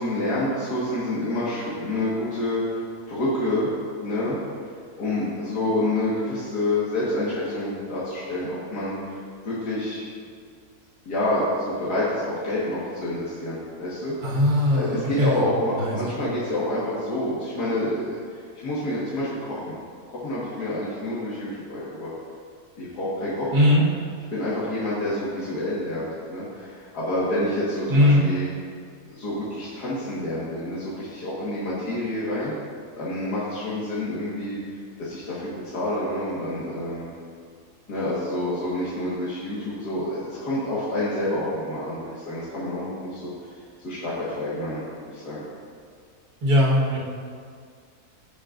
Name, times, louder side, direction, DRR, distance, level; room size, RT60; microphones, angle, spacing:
voice 1, 0.0-3.7 4.0-4.4 5.0-10.0 11.1-14.1 14.7-18.2 18.6-19.8 20.1-22.1 22.8-23.5 24.3-28.5 29.1-32.5 33.0-37.1 37.9-43.3 43.8-45.4, left 1 dB, 85° left, -9 dB, 2.2 m, -28 dB
voice 2, 14.2-15.4 15.8-16.3 23.5-23.8 27.9-28.2 46.4-47.0, left 1 dB, 65° right, -5 dB, 2.0 m, -20 dB
16.5 x 6.5 x 2.5 m, 2.1 s
omnidirectional pair, 1.7 m